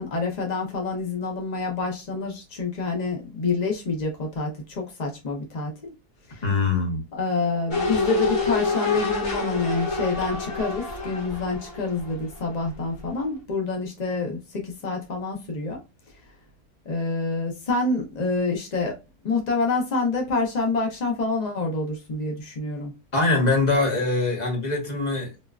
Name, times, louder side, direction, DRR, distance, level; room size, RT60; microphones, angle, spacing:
voice 1, 0.0-5.7 6.3-6.4 7.1-15.8 16.9-19.0 19.2-22.9, left 3 dB, 75° left, 0.4 m, -27 dB
voice 2, 6.4-7.0 23.1-25.3, left 3 dB, 30° left, 1.0 m, -23 dB
sound 1, 7.7-12.7 13.0-13.1, left 3 dB, 45° left, 1.6 m, -27 dB
4.2 x 2.3 x 2.3 m
omnidirectional pair, 1.7 m